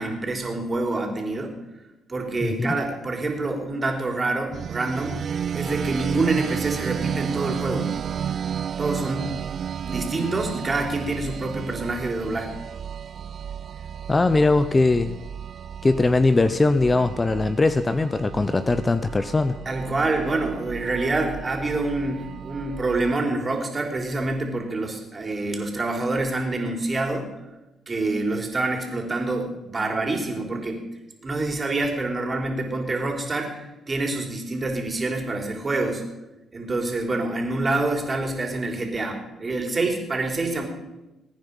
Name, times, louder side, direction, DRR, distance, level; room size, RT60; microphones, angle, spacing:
voice 1, 0.0-1.5 2.1-5.2 5.5-7.9 8.8-9.3 9.8-12.6 19.7-27.3 27.9-30.8 31.2-36.0 36.5-40.6, right 2 dB, 30° right, 2 dB, 3.7 m, -26 dB
sound 1, 4.5-23.2, right 8 dB, 55° right, 0.5 m, -32 dB
voice 2, 14.1-15.2 15.8-19.6, left 3 dB, 25° left, 11 dB, 0.6 m, -20 dB
22.0 x 9.4 x 5.4 m, 1.0 s
cardioid pair, 90°, 0 cm